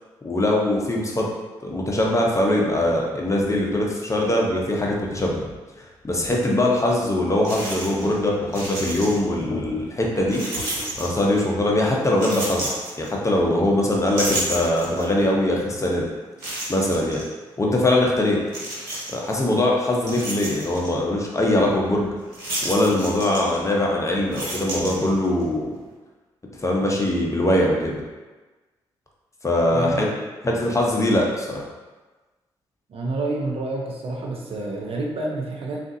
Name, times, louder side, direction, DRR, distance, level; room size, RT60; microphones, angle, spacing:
voice 1, 0.2-1.3 1.6-5.5 6.0-10.4 11.0-16.1 16.7-17.2 17.6-18.4 19.1-22.1 22.6-25.7 26.6-28.0 29.4-30.1 30.4-31.7, left 1 dB, 25° left, -2 dB, 0.8 m, -22 dB
sound 1, 6.9-7.0 7.4-8.2 8.4-9.4 10.3-11.5 12.1-13.5 13.9-15.2 15.7-15.8 16.4-17.2 18.5-19.3 19.8-20.9 22.3-23.9 24.2-25.4, right 1 dB, 90° right, 1.0 m, -31 dB
voice 2, 29.7-30.1 32.9-35.8, right 2 dB, 55° right, -1 dB, 0.7 m, -28 dB
3.6 x 2.5 x 2.7 m, 1.2 s
hypercardioid pair, 45°, 12 cm